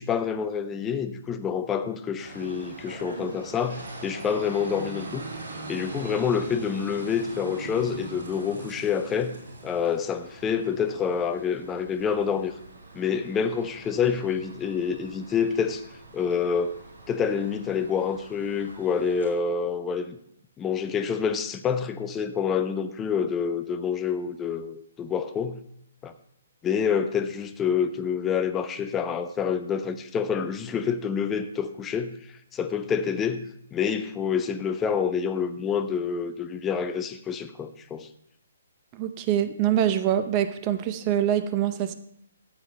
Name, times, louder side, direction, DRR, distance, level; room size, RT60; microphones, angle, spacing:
voice 1, 0.0-5.3 5.7-9.4 9.6-12.5 12.9-15.8 16.1-16.7 17.1-20.2 20.6-25.6 26.0-26.1 26.6-32.1 32.5-33.5 33.7-38.1, left 7 dB, 15° left, 9 dB, 0.7 m, -27 dB
sound 1, 2.2-19.3, right 2 dB, 55° right, 4.0 m, -42 dB
voice 2, 38.9-41.9, right 10 dB, 30° right, 11 dB, 0.6 m, -24 dB
13.5 x 8.3 x 3.3 m, 0.71 s
figure-of-eight pair, 130°, 0 cm